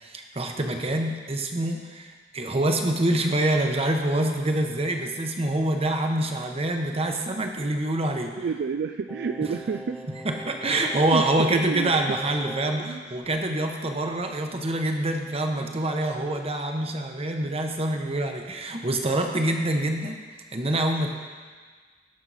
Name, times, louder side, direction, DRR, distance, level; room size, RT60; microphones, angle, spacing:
voice 1, 0.0-8.4 9.4-9.5 10.2-20.2 20.5-21.1, right 1 dB, 35° right, 4 dB, 1.0 m, -26 dB
voice 2, 8.4-10.0 10.9-12.0 12.8-13.0, right 5 dB, 60° right, 7 dB, 0.4 m, -29 dB
Singing, 9.1-12.9 13.3-13.4, right 1 dB, 5° right, 0.5 m, -41 dB
17.0 x 6.3 x 4.1 m, 1.5 s
head